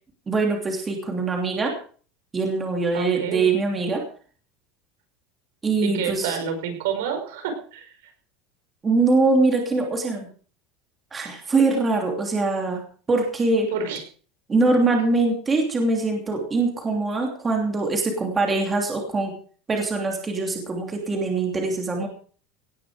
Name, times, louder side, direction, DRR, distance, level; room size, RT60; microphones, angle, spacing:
voice 1, 0.3-1.7 2.3-4.0 5.6-6.4 8.8-10.3 11.1-12.8 13.1-13.7 14.5-19.4 19.7-22.1, right 3 dB, 15° right, 1 dB, 2.9 m, -23 dB
voice 2, 2.9-3.5 5.8-7.9 13.7-14.0, right 7 dB, 85° right, 6 dB, 5.2 m, -28 dB
18.0 x 11.0 x 5.0 m, 0.43 s
supercardioid pair, 175°, 0 cm